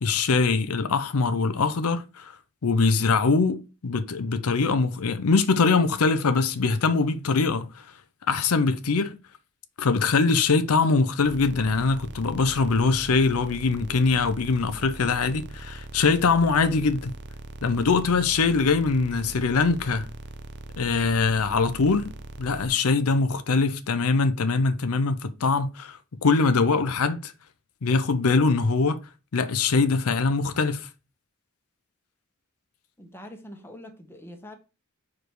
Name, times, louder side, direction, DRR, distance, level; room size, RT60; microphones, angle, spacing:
voice 1, 0.0-2.3 2.6-7.9 8.3-9.1 9.8-17.1 17.6-20.1 20.8-22.1 22.4-27.3 27.8-29.0 29.3-30.9, left 4 dB, 85° left, 0.6 m, -23 dB
sound 1, 11.2-22.7, right 2 dB, 55° right, 0.7 m, -41 dB
voice 2, 33.0-34.6, left 1 dB, 10° left, 1.2 m, -44 dB
5.0 x 4.7 x 4.6 m
head